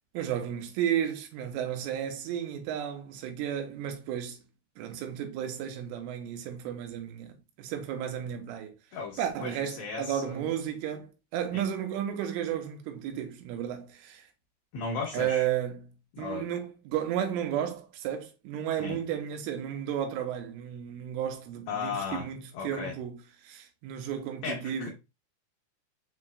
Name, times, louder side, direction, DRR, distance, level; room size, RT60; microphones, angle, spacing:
voice 1, 0.1-4.4 4.8-8.7 9.2-14.3 15.1-24.9, right 9 dB, 85° right, 3.2 m, -33 dB
voice 2, 8.9-10.4 11.5-11.6 14.7-15.5 16.1-16.5 18.8-19.0 21.7-22.3 22.5-22.9 24.4-24.9, left 5 dB, 80° left, 2.1 m, -36 dB
7.2 x 2.9 x 2.2 m
omnidirectional pair, 5.7 m